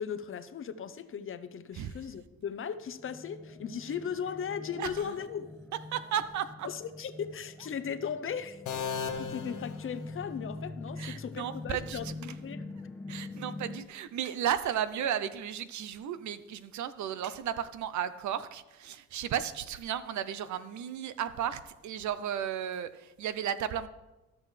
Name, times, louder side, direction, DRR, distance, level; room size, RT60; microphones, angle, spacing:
voice 1, 0.0-5.5 6.6-8.6 9.2-12.7, left 7 dB, 45° left, 11 dB, 0.7 m, -37 dB
sound 1, 2.7-13.8, left 2 dB, 5° left, 0.4 m, -44 dB
voice 2, 4.7-5.1 5.7-6.7 7.6-7.7 11.0-12.4 13.1-23.9, right 9 dB, 70° right, 13 dB, 0.6 m, -34 dB
sound 2, 8.7-10.6, left 6 dB, 75° left, 1.1 m, -37 dB
14.0 x 6.0 x 3.3 m, 1.0 s
cardioid pair, 90°, 30 cm